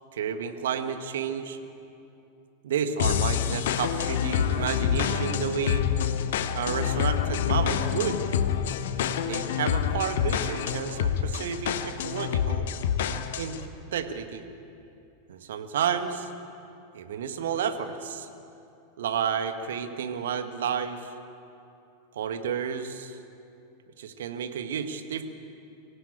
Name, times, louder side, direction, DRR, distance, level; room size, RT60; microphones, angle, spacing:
voice 1, 0.1-1.6 2.6-5.9 6.5-8.2 9.3-12.7 13.4-13.6 13.9-14.4 15.3-16.3 16.9-18.3 19.0-21.1 22.1-23.2 24.0-25.2, right 7 dB, 60° right, 8 dB, 1.7 m, -31 dB
sound 1, 3.0-13.6, left 9 dB, 55° left, 1.2 m, -27 dB
25.0 x 15.5 x 9.0 m, 2.7 s
figure-of-eight pair, 90°, 0 cm